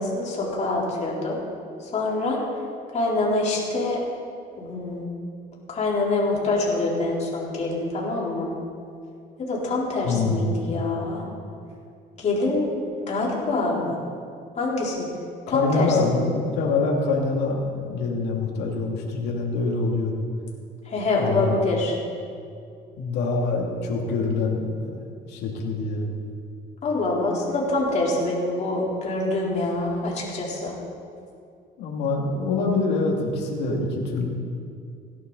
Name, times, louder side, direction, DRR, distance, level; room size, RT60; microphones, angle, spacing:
voice 1, 0.0-1.4 1.8-2.4 2.9-4.0 4.5-5.1 5.7-8.5 9.4-11.3 12.2-12.7 13.0-13.8 14.6-15.1 15.5-16.2 20.8-22.0 26.8-30.8, left 2 dB, 45° left, -4 dB, 4.0 m, -25 dB
voice 2, 10.0-10.6 13.6-13.9 15.5-20.1 21.2-21.6 23.0-24.9 25.2-26.1 31.8-34.3, left 3 dB, 80° left, -1 dB, 2.7 m, -25 dB
17.5 x 11.0 x 4.2 m, 2.4 s
cardioid pair, 110°, 17 cm